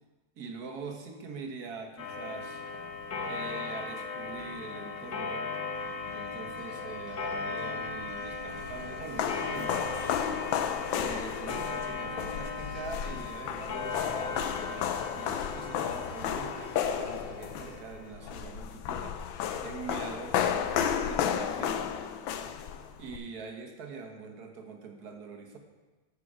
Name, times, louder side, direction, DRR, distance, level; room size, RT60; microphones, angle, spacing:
voice 1, 0.4-2.6 3.2-5.6 6.1-10.0 10.9-22.0 23.0-25.6, right 4 dB, 55° right, 4 dB, 1.6 m, -43 dB
Clock, 2.0-18.1, left 4 dB, 65° left, 1.9 m, -38 dB
sound 1, 5.7-17.7, equal, 20° left, 1.3 m, -53 dB
sound 2, 8.1-23.2, left 8 dB, 85° left, 1.4 m, -33 dB
14.0 x 6.3 x 4.9 m, 1.3 s
omnidirectional pair, 2.1 m